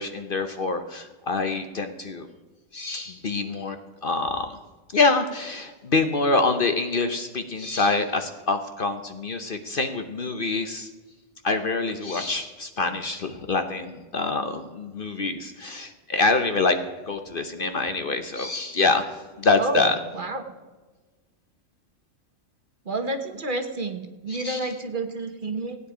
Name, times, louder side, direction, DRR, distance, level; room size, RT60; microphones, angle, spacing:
voice 1, 0.0-2.3 2.7-4.6 4.9-10.9 11.4-16.8 17.1-19.0 19.4-20.0 24.3-24.7, left 3 dB, 50° left, 8 dB, 0.9 m, -25 dB
voice 2, 22.9-25.8, right 2 dB, 40° right, 6 dB, 1.1 m, -29 dB
16.0 x 9.4 x 4.9 m, 1.3 s
omnidirectional pair, 1.4 m